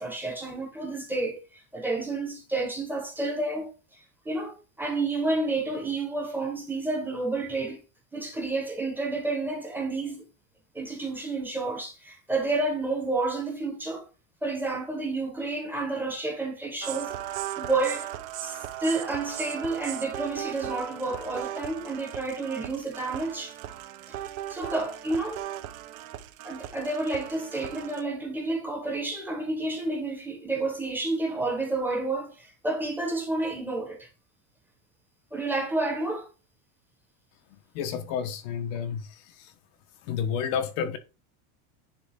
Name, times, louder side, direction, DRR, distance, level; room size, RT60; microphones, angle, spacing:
voice 1, 0.0-3.7 4.2-7.8 8.1-10.2 10.7-14.1 14.4-17.1 17.6-18.1 18.4-23.6 24.1-24.2 24.5-25.4 26.4-34.1 35.3-36.3, right 2 dB, 5° right, 1.3 m, -30 dB
sound 1, 16.8-28.0, right 12 dB, 70° right, 1.0 m, -38 dB
voice 2, 37.7-39.5 40.0-41.0, left 7 dB, 55° left, 1.2 m, -31 dB
10.0 x 3.5 x 3.7 m
cardioid pair, 175°, 43 cm